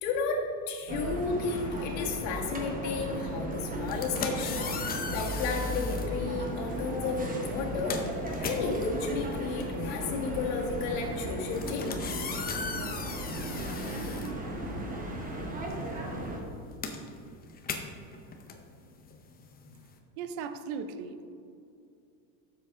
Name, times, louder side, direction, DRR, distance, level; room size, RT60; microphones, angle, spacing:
voice 1, 0.0-8.0 8.4-11.9, left 4 dB, 65° left, 0 dB, 2.0 m, -33 dB
sound 1, 0.9-16.4, right 1 dB, 15° right, 1.2 m, -36 dB
sound 2, 3.8-6.1 7.0-7.2 7.5-15.0 15.3-20.0, left 5 dB, 20° left, 0.7 m, -38 dB
voice 2, 20.2-21.3, right 5 dB, 55° right, 9 dB, 0.8 m, -37 dB
12.0 x 7.3 x 3.8 m, 2.5 s
supercardioid pair, 145°, 49 cm